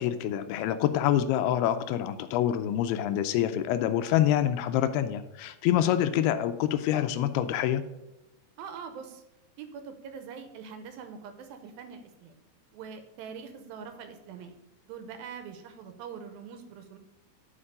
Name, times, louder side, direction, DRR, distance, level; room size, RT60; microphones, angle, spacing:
voice 1, 0.0-7.8, left 11 dB, 90° left, 10 dB, 2.6 m, -26 dB
voice 2, 8.6-9.2 9.6-12.4 12.7-14.6 14.8-17.0, right 6 dB, 80° right, 8 dB, 2.5 m, -43 dB
11.0 x 4.6 x 4.9 m, 0.98 s
omnidirectional pair, 4.5 m